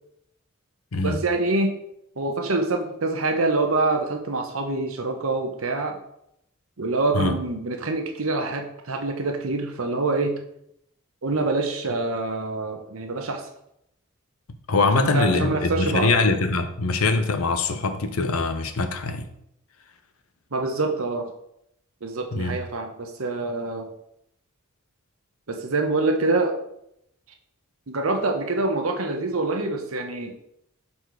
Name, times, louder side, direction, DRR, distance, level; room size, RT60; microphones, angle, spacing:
voice 1, 1.0-1.7 2.2-6.0 6.8-10.4 11.2-13.5 14.9-16.1 20.5-21.3 22.0-23.9 25.5-26.6 27.9-30.3, right 3 dB, 70° right, 4 dB, 1.0 m, -25 dB
voice 2, 14.7-19.3 22.3-22.6, left 3 dB, 90° left, 9 dB, 0.8 m, -23 dB
6.6 x 4.3 x 4.7 m, 0.76 s
head